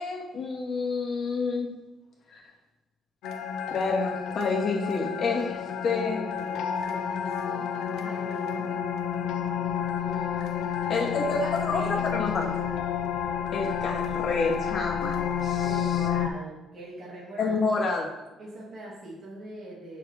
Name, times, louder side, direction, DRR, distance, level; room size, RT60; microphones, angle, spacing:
voice 1, 0.0-1.7 2.3-2.4 3.7-5.6 5.8-6.2 10.9-12.5 13.5-15.9 17.4-18.1, left 4 dB, 50° left, -2 dB, 2.3 m, -28 dB
sound 1, 3.2-16.3, left 8 dB, 90° left, 0.7 m, -30 dB
voice 2, 5.3-8.8 9.9-12.1 15.4-17.6 18.4-20.0, right 1 dB, 35° right, -7 dB, 2.8 m, -43 dB
8.4 x 6.7 x 4.6 m, 1.1 s
cardioid pair, 140°, 0 cm